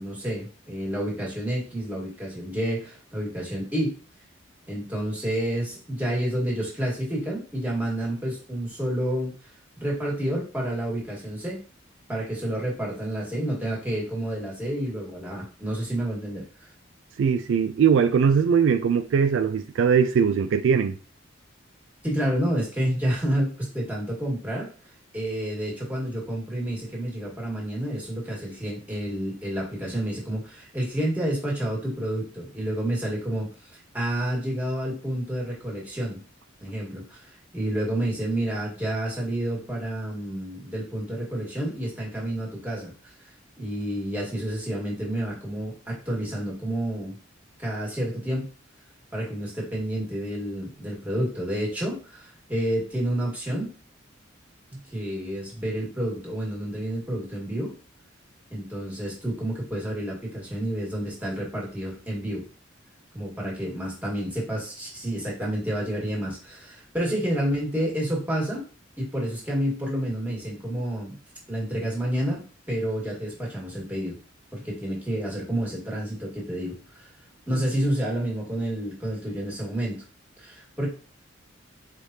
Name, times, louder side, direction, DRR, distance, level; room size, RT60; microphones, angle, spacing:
voice 1, 0.0-4.0 4.7-9.3 9.8-11.6 12.1-16.7 22.0-24.7 25.1-33.7 33.9-36.2 36.6-42.9 43.6-47.2 47.6-48.5 49.1-53.8 54.7-57.8 58.5-62.5 63.1-68.7 69.0-71.2 71.5-74.2 74.5-77.1 77.5-80.0 80.4-80.9, right 1 dB, 10° right, 1.7 m, -29 dB
voice 2, 17.2-20.9, right 6 dB, 70° right, 0.3 m, -21 dB
4.8 x 3.2 x 2.8 m
head